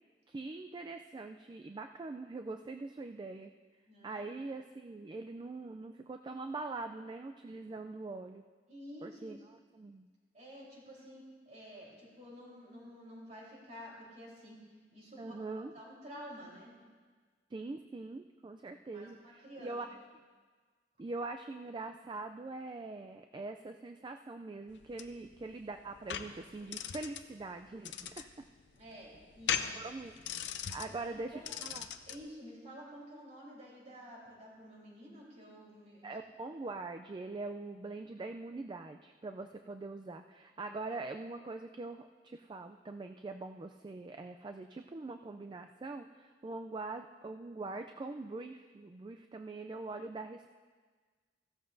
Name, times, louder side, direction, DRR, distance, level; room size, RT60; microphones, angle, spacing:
voice 1, 0.3-3.5 4.0-8.4 9.0-10.1 15.2-15.7 17.5-19.9 21.0-28.5 29.7-30.1 30.7-31.3 31.6-31.8 36.0-50.5, right 3 dB, 25° right, 6 dB, 0.3 m, -43 dB
voice 2, 3.8-4.4 7.5-7.8 8.7-9.4 10.3-14.6 14.9-16.8 18.8-19.8 28.7-29.9 30.8-31.6 32.1-36.0, equal, 45° right, -4 dB, 3.7 m, -51 dB
sound 1, 24.7-32.2, left 8 dB, 85° left, 0.6 m, -40 dB
16.0 x 13.0 x 2.6 m, 1.5 s
head